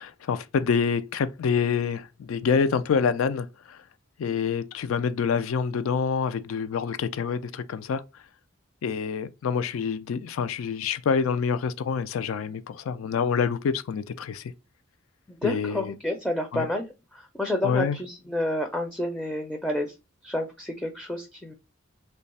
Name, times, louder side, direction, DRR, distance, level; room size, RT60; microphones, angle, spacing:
voice 1, 0.0-3.8 4.2-8.0 8.8-14.4 15.4-15.9 16.5-16.7 17.6-18.0, left 6 dB, 80° left, 0.4 m, -27 dB
voice 2, 15.3-19.9 20.2-21.5, left 1 dB, 5° left, 0.4 m, -29 dB
3.2 x 2.2 x 4.0 m
head